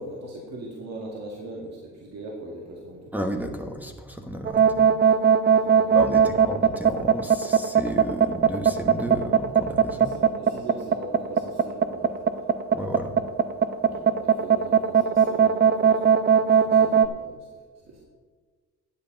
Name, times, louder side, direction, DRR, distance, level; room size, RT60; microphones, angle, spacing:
voice 1, 0.0-3.1 4.9-6.5 9.9-12.3 13.8-17.5 17.9-18.0, right 1 dB, 60° right, -1 dB, 2.1 m, -40 dB
voice 2, 3.1-4.8 5.9-10.1 12.7-13.1, equal, 5° right, 5 dB, 1.2 m, -32 dB
sound 1, 4.5-17.1, right 7 dB, 35° right, 0.7 m, -18 dB
10.5 x 8.4 x 5.3 m, 1.5 s
cardioid pair, 90°, 30 cm